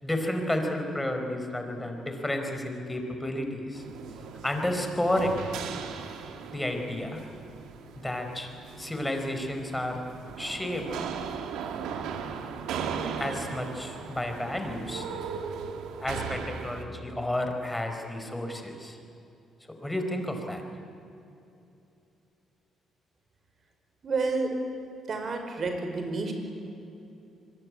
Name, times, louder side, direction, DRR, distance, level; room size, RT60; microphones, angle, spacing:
voice 1, 0.0-3.8 4.4-5.4 6.5-7.2 8.0-8.5 8.8-10.0 10.4-10.9 13.2-15.1 16.0-19.0 19.8-20.6, left 1 dB, 10° left, 4 dB, 4.7 m, -31 dB
sound 1, 3.7-16.8, right 6 dB, 85° right, 2.2 m, -38 dB
voice 2, 24.0-24.6 25.1-26.3, right 3 dB, 50° right, 5 dB, 5.3 m, -29 dB
25.5 x 22.5 x 9.8 m, 2.8 s
cardioid pair, 90°, 0 cm